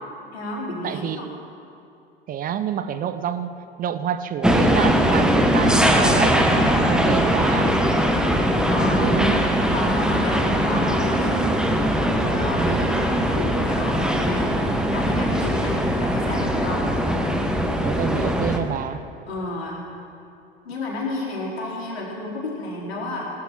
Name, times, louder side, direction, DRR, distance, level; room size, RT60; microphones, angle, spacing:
voice 1, 0.3-1.3 7.2-7.8 8.7-11.4 12.2-16.8 19.3-19.8 20.6-23.2, left 2 dB, 75° left, -3 dB, 4.0 m, -31 dB
voice 2, 0.8-1.4 2.3-6.4 6.9-7.7 8.9-9.4 12.6-12.9 17.8-19.0, right 9 dB, 25° right, 12 dB, 0.7 m, -27 dB
sound 1, 4.4-18.6, equal, ahead, 1.4 m, -21 dB
18.0 x 13.0 x 5.9 m, 2.7 s
figure-of-eight pair, 80°, 31 cm